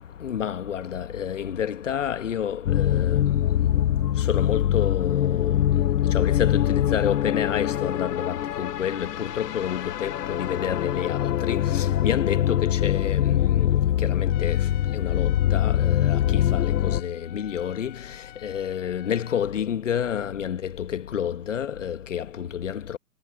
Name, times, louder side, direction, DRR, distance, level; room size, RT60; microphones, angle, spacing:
voice 1, 0.2-3.2 4.3-5.6 6.1-13.7 14.0-14.6 14.9-16.7 17.0-17.9 18.4-23.0, left 9 dB, 50° left, 1.5 m, -29 dB
sound 1, 2.7-17.0, left 11 dB, 90° left, 0.5 m, -23 dB
Trumpet, 14.3-19.5, left 23 dB, 20° left, 6.3 m, -48 dB
hypercardioid pair, 150°, 46 cm